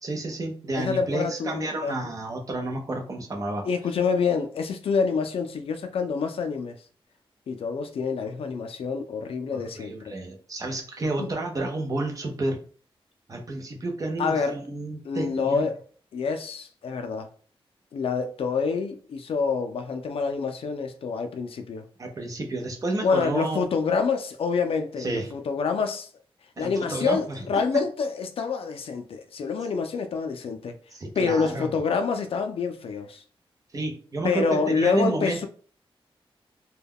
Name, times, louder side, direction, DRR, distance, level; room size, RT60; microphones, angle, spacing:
voice 1, 0.0-3.6 9.5-12.6 13.3-15.6 22.0-23.6 25.0-25.3 26.6-27.5 27.7-27.8 30.9-31.7 33.7-35.5, right 2 dB, 35° right, 0.6 m, -30 dB
voice 2, 0.8-2.0 3.7-6.8 7.5-10.2 11.2-11.3 14.2-14.6 15.0-15.8 16.1-17.3 17.9-21.8 23.0-26.1 26.6-30.8 31.2-33.2 34.2-35.5, left 5 dB, 75° left, 0.4 m, -27 dB
2.2 x 2.2 x 3.4 m
wide cardioid pair, 170°, 10 cm